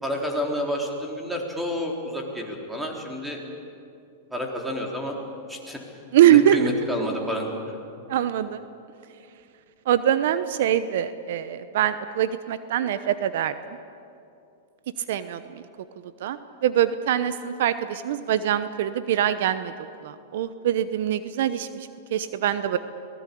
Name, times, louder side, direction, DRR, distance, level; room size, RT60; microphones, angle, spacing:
voice 1, 0.0-3.4 4.3-5.2 5.5-5.8 6.2-7.8, equal, 5° right, 0 dB, 3.9 m, -29 dB
voice 2, 6.1-6.6 8.1-8.6 9.9-13.5 15.1-15.6 16.2-19.7 20.0-22.8, right 11 dB, 70° right, 12 dB, 0.9 m, -23 dB
24.0 x 18.5 x 8.5 m, 2.6 s
hypercardioid pair, 130°, 0 cm